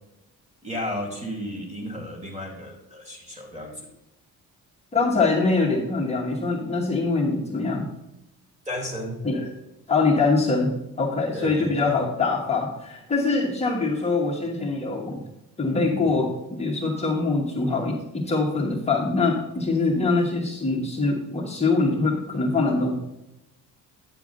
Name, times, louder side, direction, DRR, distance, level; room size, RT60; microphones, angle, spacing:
voice 1, 0.6-3.8 8.7-9.2 11.3-12.0, left 1 dB, 20° right, 1 dB, 2.3 m, -33 dB
voice 2, 4.9-7.9 9.2-9.5 9.9-15.2 15.6-22.9, left 3 dB, 20° left, -4 dB, 1.2 m, -23 dB
9.6 x 6.9 x 3.8 m, 0.90 s
cardioid pair, 160°, 36 cm